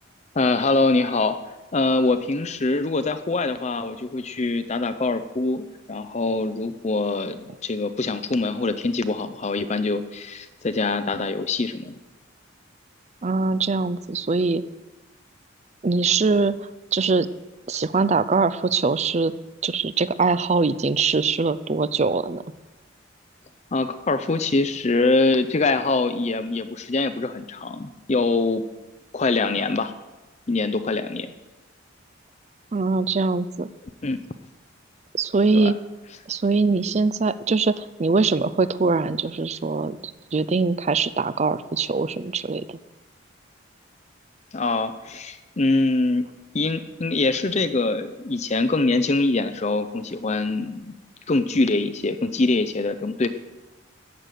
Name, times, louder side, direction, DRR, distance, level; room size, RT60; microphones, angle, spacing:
voice 1, 0.3-1.4 1.7-12.0 23.7-28.6 29.1-29.9 30.5-31.3 34.0-34.2 35.5-35.7 44.5-46.2 46.5-50.9 51.3-53.3, left 3 dB, 35° left, 10 dB, 0.6 m, -24 dB
voice 2, 13.2-14.6 15.8-16.6 16.9-17.3 17.7-19.3 19.6-22.4 32.7-33.7 35.1-35.8 36.3-42.8, right 4 dB, 35° right, 15 dB, 0.5 m, -22 dB
14.0 x 6.6 x 9.2 m, 1.1 s
head